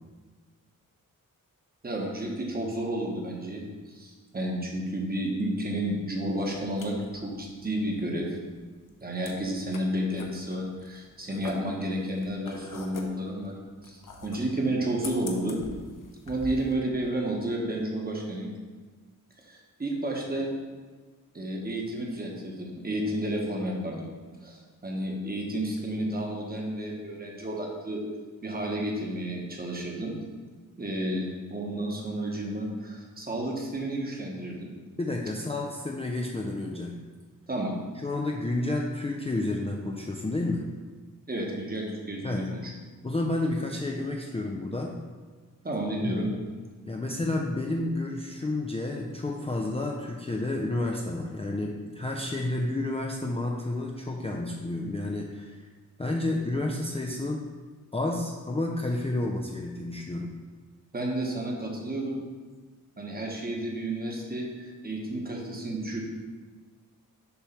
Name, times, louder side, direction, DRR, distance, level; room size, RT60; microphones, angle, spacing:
voice 1, 1.8-8.4 9.0-13.6 13.8-15.6 16.3-18.5 19.4-20.5 21.3-24.1 24.4-28.0 28.4-30.2 30.8-34.7 37.5-37.7 41.3-42.7 45.6-46.3 60.9-62.2 63.0-66.0, right 1 dB, 25° right, -1 dB, 1.1 m, -31 dB
sound 1, 6.3-16.7, left 3 dB, 70° left, 0.8 m, -45 dB
voice 2, 35.0-37.0 38.0-40.7 42.2-42.5 43.0-45.0 46.0-46.2 46.9-55.7 56.0-57.4 57.9-60.3, left 2 dB, 20° left, 0 dB, 0.4 m, -30 dB
6.9 x 3.1 x 5.6 m, 1.4 s
wide cardioid pair, 150°, 33 cm